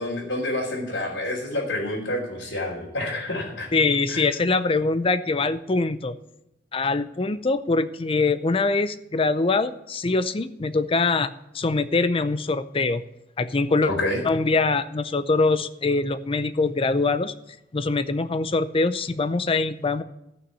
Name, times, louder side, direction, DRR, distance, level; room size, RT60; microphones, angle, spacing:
voice 1, 0.0-3.7 4.1-4.2 13.8-14.2, left 1 dB, 90° left, -6 dB, 3.2 m, -28 dB
voice 2, 3.7-6.1 6.7-11.3 11.5-13.0 13.4-13.9 14.2-17.3 17.7-20.0, left 3 dB, 30° left, 13 dB, 0.5 m, -23 dB
14.0 x 6.1 x 8.3 m, 0.89 s
head